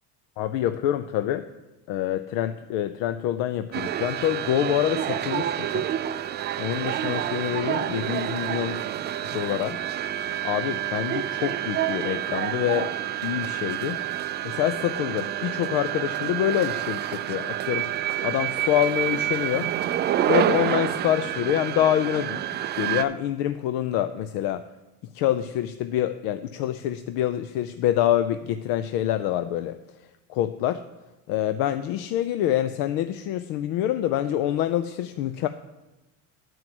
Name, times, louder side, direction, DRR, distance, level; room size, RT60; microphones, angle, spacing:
voice 1, 0.4-1.5 1.9-5.9 6.6-8.8 9.3-9.8 10.4-12.9 13.2-14.0 14.4-17.9 18.2-19.7 20.3-22.4 22.7-24.6 25.1-29.8 30.3-30.8 31.3-35.5, left 12 dB, 70° left, 11 dB, 0.6 m, -26 dB
sound 1, 3.7-23.0, right 11 dB, 30° right, 0.4 m, -28 dB
11.0 x 4.7 x 7.7 m, 1.0 s
cardioid pair, 140°, 38 cm